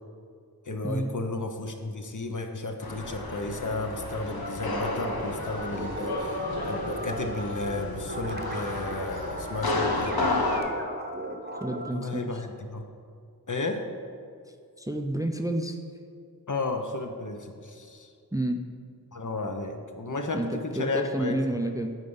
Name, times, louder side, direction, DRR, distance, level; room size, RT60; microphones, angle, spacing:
voice 1, 0.7-10.2 11.9-12.8 13.5-13.8 16.5-18.1 19.1-21.4, left 2 dB, 55° left, 4 dB, 0.8 m, -33 dB
sound 1, 2.8-10.6, left 2 dB, 90° left, 0.8 m, -32 dB
sound 2, 4.3-11.9, right 1 dB, 30° right, 0.8 m, -37 dB
voice 2, 11.6-12.4 14.8-15.8 18.3-18.6 20.3-22.0, right 1 dB, 10° right, 5 dB, 0.5 m, -30 dB
9.1 x 4.1 x 5.5 m, 2.3 s
wide cardioid pair, 40°, 36 cm